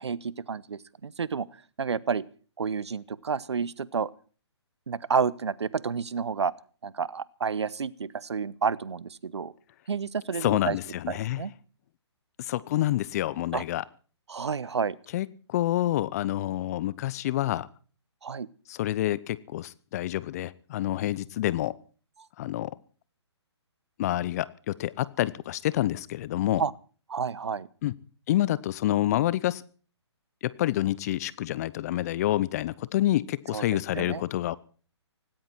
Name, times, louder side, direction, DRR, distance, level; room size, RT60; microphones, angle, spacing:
voice 1, 0.0-1.5 1.8-2.2 2.6-4.1 4.9-6.5 6.8-9.5 9.9-10.8 11.1-11.5 13.5-13.6 14.3-15.0 18.2-18.5 26.6-26.7 27.1-27.7 33.5-33.6 33.9-34.2, right 6 dB, 70° right, 21 dB, 1.0 m, -30 dB
voice 2, 10.4-11.4 12.4-13.8 15.1-17.7 18.7-21.7 22.4-22.7 24.0-26.6 27.8-27.9 28.3-29.6 30.4-34.6, left 14 dB, 35° left, 20 dB, 0.8 m, -28 dB
18.5 x 16.5 x 4.5 m, 0.42 s
figure-of-eight pair, 135°, 15 cm